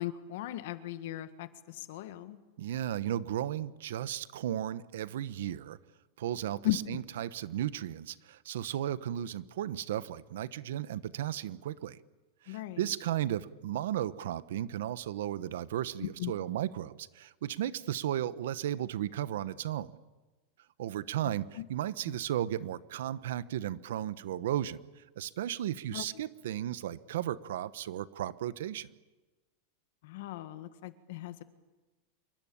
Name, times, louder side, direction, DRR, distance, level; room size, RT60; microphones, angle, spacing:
voice 1, 0.0-2.4 6.6-6.8 12.5-12.8 16.0-16.3 21.6-21.7 22.1-22.2 25.9-26.0 30.0-31.4, left 15 dB, 55° left, 11 dB, 1.7 m, -37 dB
voice 2, 2.6-5.8 6.2-12.0 12.4-19.9 20.8-28.9, right 11 dB, 70° right, 15 dB, 1.1 m, -35 dB
27.5 x 23.5 x 8.7 m, 1.2 s
supercardioid pair, 180°, 0 cm